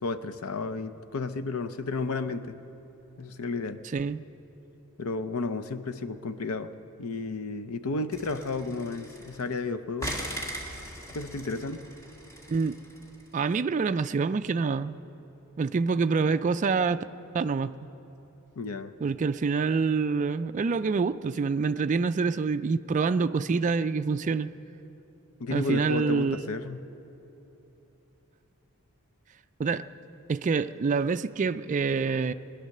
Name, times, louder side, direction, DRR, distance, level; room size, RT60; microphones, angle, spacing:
voice 1, 0.0-2.6 3.2-3.8 5.0-6.7 7.0-10.2 11.1-11.8 18.6-18.9 25.4-26.8, left 3 dB, 80° left, 11 dB, 0.7 m, -32 dB
voice 2, 3.9-4.2 12.5-12.8 13.3-15.0 15.6-17.0 17.3-17.7 19.0-24.5 25.5-26.4 29.6-29.8 30.3-32.3, right 4 dB, 35° right, 10 dB, 0.3 m, -26 dB
sound 1, 8.1-9.6 10.0-13.3, right 1 dB, 15° left, 1.8 m, -40 dB
20.5 x 10.0 x 6.5 m, 3.0 s
head